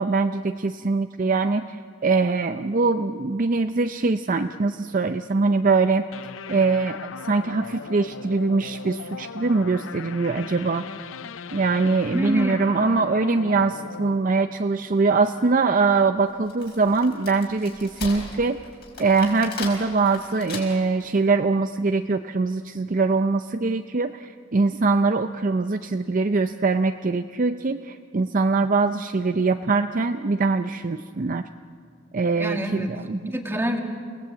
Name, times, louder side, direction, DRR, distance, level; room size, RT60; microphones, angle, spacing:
voice 1, 0.0-6.0 6.5-10.8 11.5-18.6 19.0-31.4 32.1-33.3, right 3 dB, 40° right, 8 dB, 0.5 m, -23 dB
sound 1, 6.1-15.5, left 6 dB, 75° left, 0.6 m, -39 dB
voice 2, 12.1-12.7 32.4-32.9 33.3-33.8, equal, 10° right, 3 dB, 1.9 m, -26 dB
Wood, 16.3-21.0, left 4 dB, 50° left, 5.0 m, -38 dB
28.5 x 18.0 x 8.2 m, 2.1 s
head